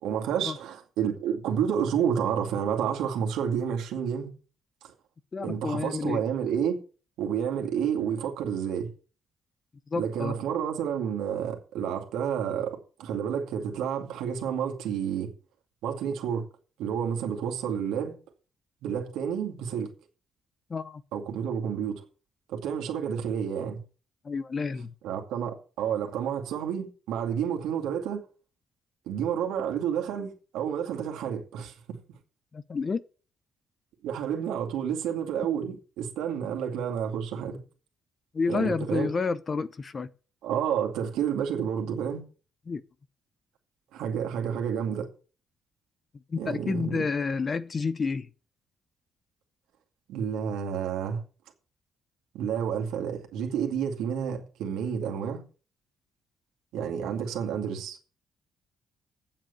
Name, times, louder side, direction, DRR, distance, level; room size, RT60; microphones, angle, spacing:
voice 1, 0.0-4.3 5.4-6.8 7.2-8.9 10.0-15.3 15.8-16.5 16.8-18.1 18.8-19.9 21.1-22.0 22.5-23.8 25.0-28.2 29.1-31.7 34.0-37.6 38.5-39.1 40.4-42.2 43.9-45.1 46.4-47.0 50.1-51.2 52.3-55.4 56.7-58.0, right 8 dB, 90° right, 2.4 m, -30 dB
voice 2, 5.3-6.2 9.9-10.4 20.7-21.0 24.2-24.9 32.5-33.0 38.3-40.1 42.7-42.8 46.3-48.3, left 4 dB, 35° left, 0.8 m, -30 dB
8.8 x 7.8 x 6.9 m
cardioid pair, 90°, 0 cm